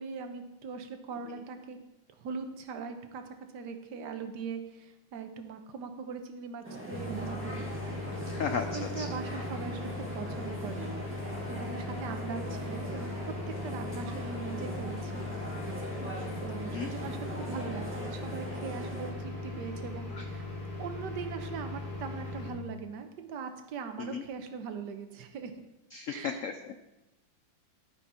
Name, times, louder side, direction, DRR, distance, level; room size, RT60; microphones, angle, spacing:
voice 1, 0.0-1.8 2.2-3.2 3.5-7.7 8.6-10.9 11.5-13.3 13.6-15.3 16.4-20.5 20.8-25.5 26.1-26.5, right 5 dB, 65° right, 6 dB, 1.5 m, -40 dB
sound 1, 6.6-19.1, equal, 5° right, 1.8 m, -40 dB
sound 2, 6.9-22.5, left 2 dB, 25° left, 3.8 m, -39 dB
voice 2, 8.2-9.1 16.6-16.9 20.1-20.2 24.0-24.2 25.9-26.8, left 6 dB, 85° left, 7 dB, 0.7 m, -35 dB
11.0 x 9.0 x 4.4 m, 0.97 s
omnidirectional pair, 2.2 m